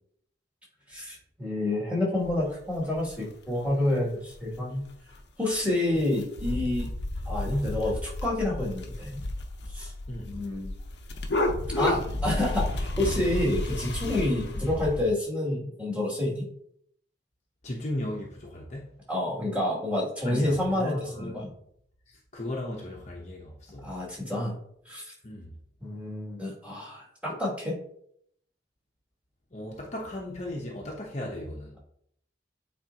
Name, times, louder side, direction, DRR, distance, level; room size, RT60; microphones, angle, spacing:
voice 1, 0.9-4.9 5.4-6.9 7.3-9.2 9.7-9.9 10.3-10.7 11.8-16.4 19.1-21.5 23.8-24.5 24.9-25.1 25.8-27.8, left 1 dB, 5° right, 2.5 m, -28 dB
sound 1, 2.2-2.3 2.9-3.2 3.6-3.7 4.1-4.2 4.4-4.8 5.1-5.2 5.5-5.6 5.9-15.1, left 1 dB, 65° left, 0.8 m, -32 dB
voice 2, 10.1-10.4 14.5-14.7 17.6-18.9 20.2-21.6 22.1-23.9 25.2-25.5 29.5-31.7, left 1 dB, 35° left, 0.9 m, -36 dB
8.9 x 4.3 x 2.9 m
head